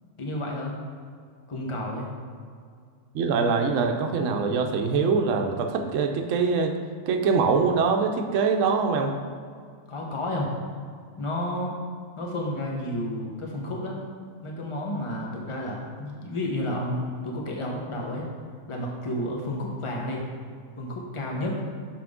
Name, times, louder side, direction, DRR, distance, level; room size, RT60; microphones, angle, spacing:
voice 1, 0.2-0.8 1.5-2.1 9.9-10.5 11.2-11.7 12.2-14.0 14.4-18.3 18.7-20.3 20.8-21.6, left 1 dB, 25° left, -1 dB, 0.9 m, -31 dB
voice 2, 3.1-6.7 7.1-9.1, right 5 dB, 75° right, 4 dB, 1.0 m, -23 dB
6.7 x 5.8 x 3.6 m, 2.1 s
omnidirectional pair, 1.4 m